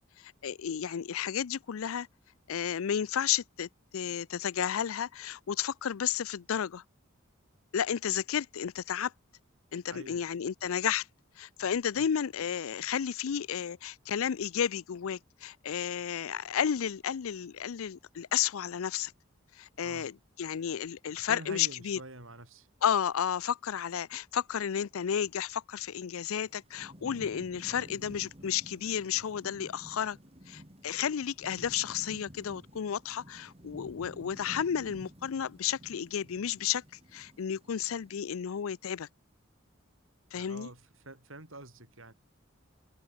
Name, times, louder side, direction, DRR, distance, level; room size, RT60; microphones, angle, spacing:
voice 1, 0.2-2.1 2.5-6.8 7.7-9.1 9.7-11.1 11.4-19.1 19.6-22.0 22.8-30.2 30.5-36.8 37.1-39.1 40.3-40.7, left 8 dB, 85° left, 0.4 m, -32 dB
voice 2, 21.1-22.7 27.7-27.9 40.3-42.1, right 2 dB, 75° right, 7.6 m, -47 dB
Thunderstorm / Rain, 26.3-38.6, equal, 30° right, 6.6 m, -52 dB
head